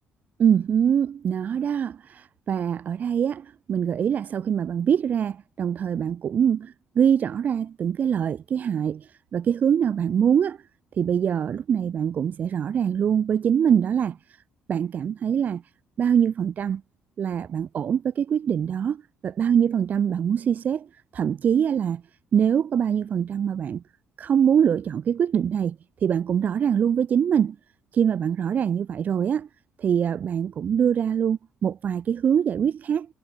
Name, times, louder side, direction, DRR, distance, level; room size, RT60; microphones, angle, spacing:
voice 1, 0.4-10.6 11.0-14.2 14.7-15.6 16.0-16.8 17.2-20.9 21.1-22.0 22.3-23.8 24.2-25.8 26.0-27.5 27.9-29.5 29.8-33.1, right 8 dB, 45° right, 3.4 m, -23 dB
cardioid pair, 150°, 4 cm